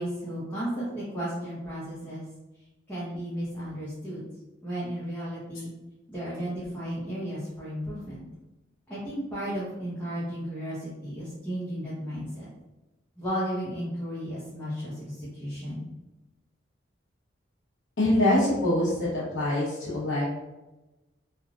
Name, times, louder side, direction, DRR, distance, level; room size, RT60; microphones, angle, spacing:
voice 1, 0.0-2.3 2.9-4.2 4.6-5.7 6.1-8.2 8.9-12.5 13.2-15.8, equal, 10° left, -11 dB, 0.8 m, -34 dB
voice 2, 18.0-20.2, left 1 dB, 75° left, -11 dB, 1.0 m, -24 dB
3.2 x 2.4 x 2.4 m, 1.0 s
head